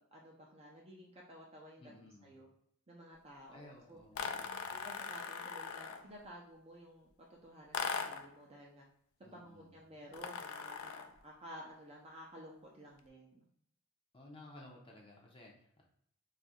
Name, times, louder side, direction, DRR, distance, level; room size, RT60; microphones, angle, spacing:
voice 1, 0.0-2.5 2.9-4.0 4.8-8.8 9.3-13.5, equal, 25° right, -3 dB, 0.4 m, -54 dB
voice 2, 1.8-2.4 3.5-4.5 9.2-9.8 14.1-15.8, left 1 dB, 25° left, -2 dB, 0.5 m, -56 dB
sound 1, 4.1-6.1 7.7-8.3 10.1-11.2, left 6 dB, 75° left, 0.4 m, -40 dB
2.6 x 2.4 x 4.1 m, 0.72 s
head